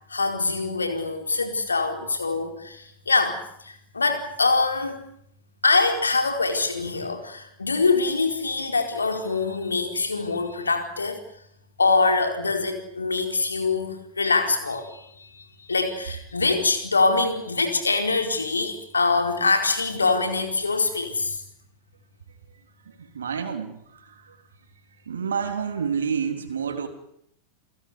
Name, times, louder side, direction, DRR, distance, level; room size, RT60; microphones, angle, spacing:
voice 1, 0.1-5.0 5.6-11.2 11.8-21.4, left 3 dB, 75° left, 6 dB, 4.4 m, -24 dB
voice 2, 22.9-24.4 25.1-26.9, right 6 dB, 70° right, 5 dB, 3.4 m, -29 dB
29.0 x 17.0 x 9.7 m, 0.74 s
figure-of-eight pair, 90°, 0 cm